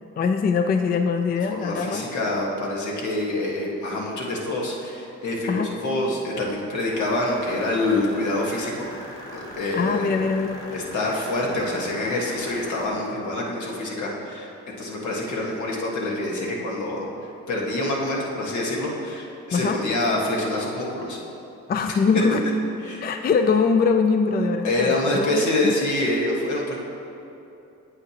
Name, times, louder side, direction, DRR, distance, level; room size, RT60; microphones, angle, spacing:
voice 1, 0.2-2.1 5.5-5.7 9.7-10.6 19.5-19.8 21.7-22.4 23.0-25.7, left 5 dB, 30° left, 6 dB, 0.4 m, -22 dB
voice 2, 1.5-8.9 9.3-10.1 10.7-14.5 14.8-17.1 17.5-21.2 22.8-23.0 24.6-26.8, left 1 dB, 70° left, -3 dB, 1.6 m, -26 dB
sound 1, 6.9-12.9, equal, 15° left, 1.4 m, -40 dB
8.8 x 7.9 x 2.9 m, 2.8 s
cardioid pair, 90°, 30 cm